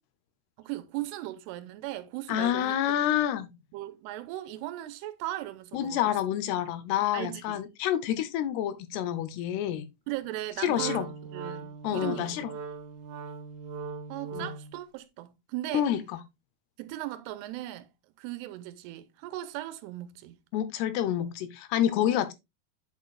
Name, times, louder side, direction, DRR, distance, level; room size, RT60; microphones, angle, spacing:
voice 1, 0.6-2.8 3.7-6.2 7.1-7.7 10.1-12.4 14.1-15.9 16.8-17.9 18.2-20.4, right 15 dB, 85° right, 2.7 m, -38 dB
voice 2, 2.3-3.5 5.7-9.9 10.6-11.1 11.8-12.5 14.3-14.5 15.7-16.0 20.5-22.3, left 11 dB, 80° left, 2.7 m, -28 dB
Wind instrument woodwind instrument, 10.7-14.8, right 5 dB, 65° right, 3.0 m, -39 dB
8.4 x 6.5 x 2.3 m
omnidirectional pair, 4.8 m